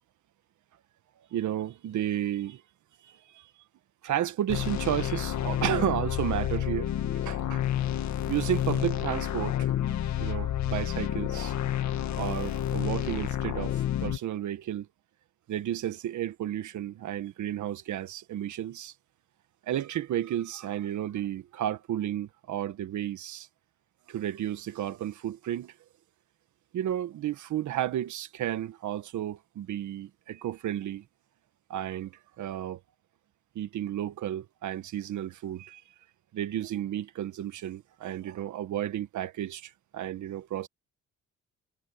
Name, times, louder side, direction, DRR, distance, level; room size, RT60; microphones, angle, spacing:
voice 1, 1.3-2.6 3.0-3.5 4.0-6.9 7.2-7.6 8.3-11.5 12.2-14.9 15.5-18.9 19.7-23.5 24.1-25.7 26.7-31.0 31.7-32.8 33.5-35.8 36.3-40.7, right 11 dB, 75° right, 1.6 m, -32 dB
sound 1, 4.5-14.2, left 11 dB, 65° left, 1.9 m, -30 dB
cardioid pair, 90°, 30 cm